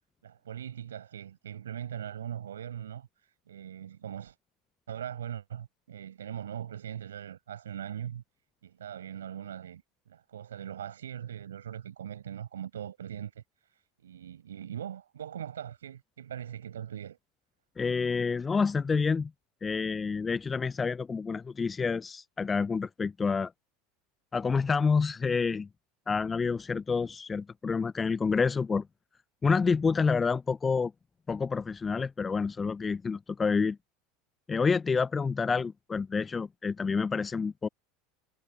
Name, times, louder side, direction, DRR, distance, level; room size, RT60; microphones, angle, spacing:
voice 1, 0.2-4.4 4.9-8.2 8.6-17.2, right 9 dB, 85° right, 5.4 m, -41 dB
voice 2, 17.8-19.3 19.6-23.5 24.3-25.7 26.1-28.9 29.4-30.9 31.3-33.8 34.5-37.7, left 5 dB, 25° left, 0.3 m, -28 dB
hypercardioid pair, 80°, 0 cm